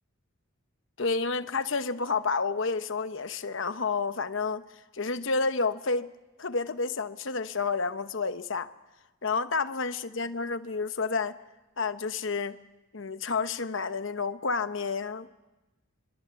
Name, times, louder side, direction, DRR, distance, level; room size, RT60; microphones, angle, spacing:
voice 1, 1.0-4.6 4.9-6.1 6.4-8.7 9.2-11.4 11.8-12.6 12.9-15.3, left 4 dB, 65° left, 11 dB, 1.0 m, -30 dB
26.0 x 23.0 x 6.9 m, 1.1 s
head